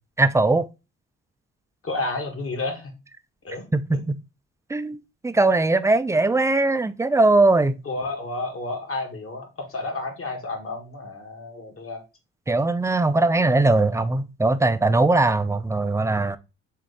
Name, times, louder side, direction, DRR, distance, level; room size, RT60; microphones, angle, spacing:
voice 1, 0.2-0.7 3.7-4.1 4.7-7.8 12.5-16.4, right 2 dB, 10° right, 0.5 m, -20 dB
voice 2, 1.8-2.9 3.4-3.7 3.9-4.0 7.9-12.0, left 2 dB, 45° left, 1.8 m, -31 dB
3.8 x 3.7 x 3.4 m
hypercardioid pair, 50°, 32 cm